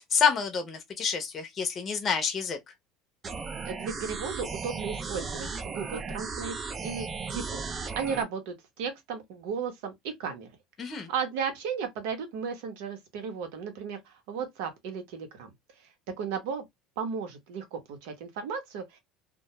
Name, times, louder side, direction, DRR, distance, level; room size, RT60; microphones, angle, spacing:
voice 1, 0.1-2.6 10.8-11.1, left 6 dB, 30° left, 0.6 m, -28 dB
sound 1, 3.2-8.2, right 4 dB, 25° right, 0.4 m, -36 dB
voice 2, 3.6-7.6 7.9-10.5 10.8-15.5 16.2-16.6 17.0-19.0, right 6 dB, 80° right, 0.9 m, -35 dB
2.3 x 2.2 x 2.8 m
cardioid pair, 145°, 0 cm